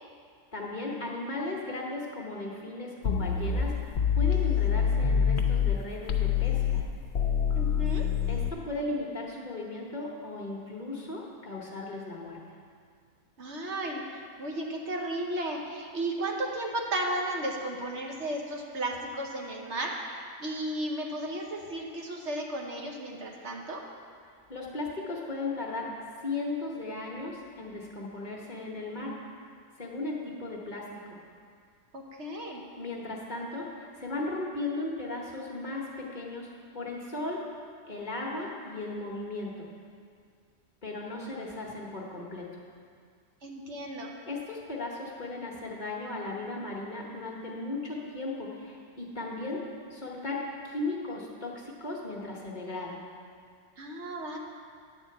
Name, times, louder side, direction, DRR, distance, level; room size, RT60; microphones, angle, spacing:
voice 1, 0.5-6.8 8.3-12.4 24.5-25.9 26.2-29.2 29.8-31.2 32.8-37.4 37.9-39.7 40.8-42.5 44.3-49.6 49.9-53.0, left 2 dB, 35° left, -3 dB, 1.2 m, -36 dB
sound 1, 3.0-5.8 6.1-8.5, left 7 dB, 60° left, 0.9 m, -26 dB
voice 2, 7.5-8.1 13.4-23.8 31.9-32.6 43.4-44.1 53.8-54.4, right 1 dB, 60° right, 0 dB, 1.2 m, -34 dB
10.5 x 4.3 x 7.7 m, 2.2 s
omnidirectional pair, 1.4 m